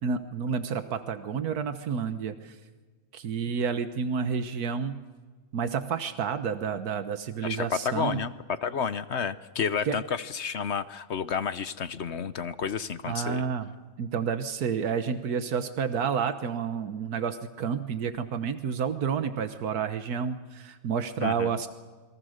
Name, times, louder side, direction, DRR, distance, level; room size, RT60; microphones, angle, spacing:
voice 1, 0.0-2.6 3.1-5.0 5.5-8.2 9.8-10.0 13.1-13.7 14.0-21.7, right 6 dB, 90° right, 9 dB, 1.6 m, -30 dB
voice 2, 7.4-8.3 8.6-13.5 21.2-21.6, left 6 dB, 55° left, 13 dB, 1.0 m, -31 dB
28.0 x 23.0 x 6.6 m, 1.4 s
omnidirectional pair, 1.6 m